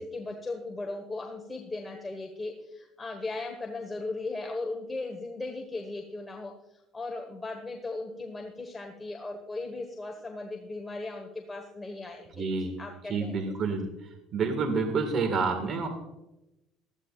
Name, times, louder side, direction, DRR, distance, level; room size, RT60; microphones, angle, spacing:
voice 1, 0.0-6.5 6.9-13.5, left 2 dB, 15° left, 2 dB, 1.4 m, -37 dB
voice 2, 12.3-12.8 13.1-13.9 14.3-15.9, right 4 dB, 45° right, 6 dB, 1.8 m, -28 dB
16.0 x 13.5 x 2.5 m, 0.94 s
cardioid pair, 120°, 0 cm